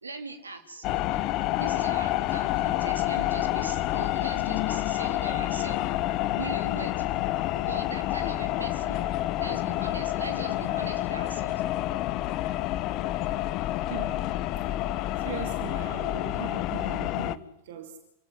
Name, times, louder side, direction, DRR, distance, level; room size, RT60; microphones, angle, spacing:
voice 1, 0.0-1.2 1.6-5.8 6.4-7.0 7.7-11.5, right 3 dB, 75° right, 3.6 m, -40 dB
sound 1, 0.8-17.4, left 15 dB, 40° left, 1.1 m, -28 dB
Organ, 1.4-12.6, right 3 dB, 10° right, 6.5 m, -57 dB
voice 2, 13.9-14.3 15.2-18.0, right 7 dB, 55° right, 2.6 m, -39 dB
28.0 x 16.0 x 9.7 m
figure-of-eight pair, 90°, 0 cm